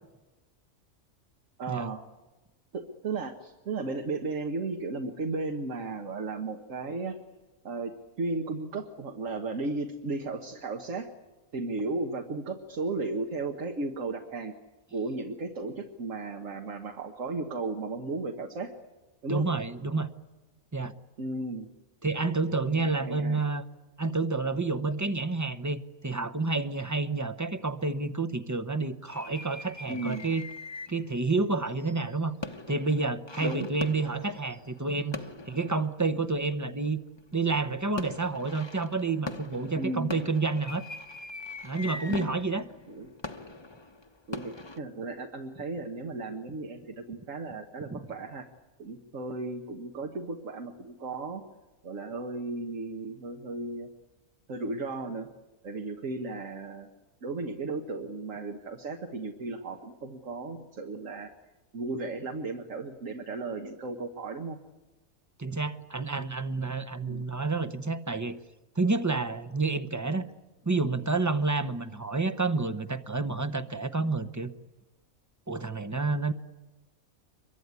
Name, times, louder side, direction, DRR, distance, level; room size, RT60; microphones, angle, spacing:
voice 1, 1.6-2.0 2.7-7.2 7.6-11.1 11.5-14.5 14.9-18.7 19.2-19.5 21.2-21.7 22.7-23.4 29.9-30.3 33.4-33.7 39.8-40.1 42.1-42.4 42.9-43.1 44.3-48.5 48.8-51.4 51.8-53.9 54.5-55.3 55.6-56.9 57.2-61.3 61.7-64.6 67.0-67.2, right 3 dB, 65° right, 3 dB, 1.7 m, -35 dB
voice 2, 19.3-20.1 20.7-20.9 22.0-23.6 24.0-30.4 30.9-32.4 32.7-35.2 35.5-37.0 37.3-40.8 41.6-42.6 47.9-48.0 65.4-68.4 68.8-70.3 70.6-74.5 75.5-76.3, right 3 dB, 15° right, 10 dB, 0.7 m, -29 dB
sound 1, 29.1-31.1 31.6-36.5 37.2-37.6 38.0-44.8, left 3 dB, 20° left, 1.0 m, -42 dB
25.0 x 23.0 x 9.6 m, 1.1 s
omnidirectional pair, 1.4 m